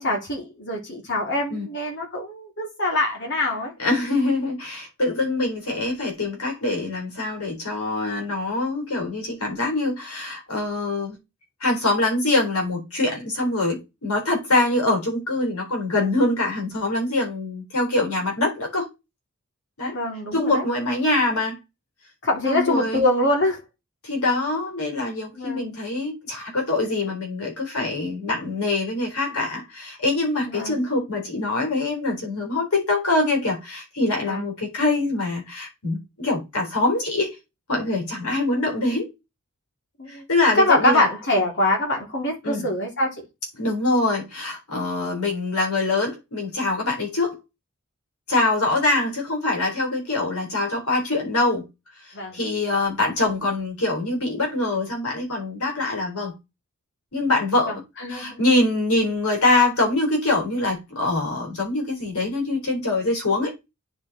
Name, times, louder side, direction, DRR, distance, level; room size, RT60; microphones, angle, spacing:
voice 1, 0.0-3.7 19.9-20.6 22.2-23.6 25.3-25.8 30.5-30.8 34.2-34.5 40.0-40.3 40.6-43.2 52.1-52.4 57.7-57.8 58.0-58.4, left 1 dB, 55° left, 3.0 m, -24 dB
voice 2, 3.8-11.2 11.6-18.9 19.8-20.0 20.3-21.6 22.4-23.1 24.0-37.3 37.7-39.1 40.1-41.1 42.4-42.7 43.6-47.4 48.3-51.6 52.1-56.3 57.1-57.7 58.1-63.5, left 2 dB, 90° left, 4.3 m, -24 dB
9.6 x 4.6 x 4.3 m
head